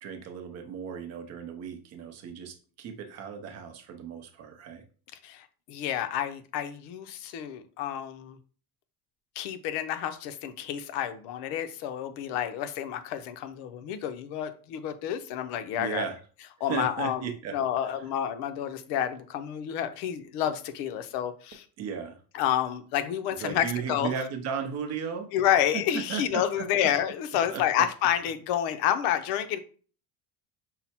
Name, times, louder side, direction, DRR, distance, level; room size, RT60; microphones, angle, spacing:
voice 1, 0.0-4.8 15.8-16.2 16.7-17.5 17.8-17.9 21.8-22.2 23.4-25.3 25.7-25.8 26.1-26.4 27.5-27.6, right 7 dB, 40° right, 5 dB, 0.6 m, -35 dB
voice 2, 5.2-8.4 9.4-16.1 16.6-21.6 22.3-24.1 25.3-29.6, left 10 dB, 75° left, 9 dB, 0.7 m, -29 dB
5.6 x 2.0 x 4.2 m, 0.40 s
cardioid pair, 175°, 41 cm